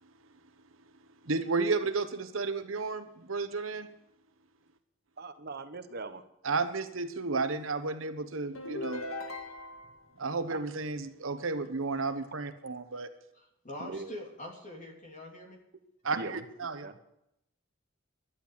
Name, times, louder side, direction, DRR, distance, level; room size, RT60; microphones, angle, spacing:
voice 1, 1.2-3.9 6.4-9.0 10.2-13.1 16.0-16.9, right 4 dB, 85° right, 10 dB, 1.1 m, -32 dB
voice 2, 5.2-6.2 10.5-10.6 13.8-14.1 16.1-16.4 16.8-16.9, right 3 dB, 50° right, 10 dB, 1.0 m, -40 dB
sound 1, 8.5-10.0, left 2 dB, 90° left, 1.8 m, -39 dB
voice 3, 13.3-15.6, left 1 dB, 40° left, 0 dB, 3.3 m, -44 dB
11.5 x 11.0 x 8.6 m, 0.82 s
head